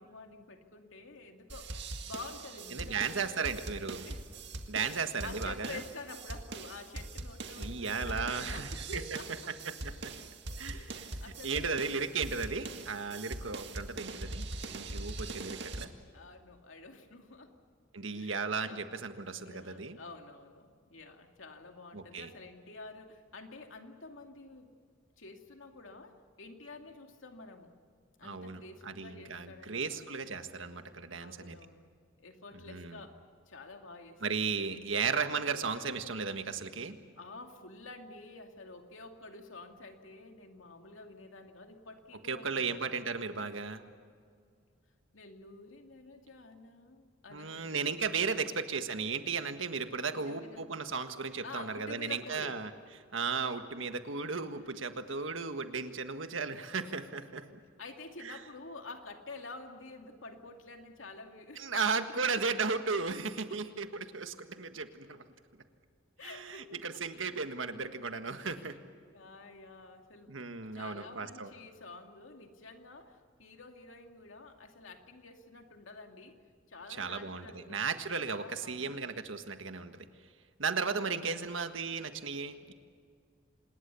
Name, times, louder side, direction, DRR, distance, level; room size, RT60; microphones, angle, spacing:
voice 1, 0.0-1.7 2.1-4.2 4.8-9.5 10.7-12.1 16.1-17.6 18.1-18.9 19.4-24.7 25.2-27.7 28.2-30.0 30.8-31.9 32.2-33.2 33.5-34.5 37.2-42.9 45.1-47.9 48.4-48.8 50.1-50.7 51.4-52.6 54.7-54.9 57.8-62.2 66.2-67.0 68.4-68.8 69.1-76.4 76.7-77.9 78.3-79.0, left 3 dB, 85° left, 4 dB, 2.5 m, -49 dB
sound 1, 1.5-15.9, right 2 dB, 60° right, 1.9 m, -42 dB
voice 2, 2.7-4.0 4.7-5.8 7.6-9.0 9.7-10.1 10.6-10.8 11.4-15.9 17.9-20.0 21.9-22.3 28.2-31.6 32.7-33.0 34.2-37.0 42.3-43.8 47.3-52.7 53.1-57.5 58.2-58.4 61.6-65.2 66.2-68.8 70.3-71.5 76.9-80.1 80.6-82.7, right 5 dB, 80° right, 8 dB, 1.6 m, -35 dB
26.5 x 20.5 x 7.0 m, 2.1 s
head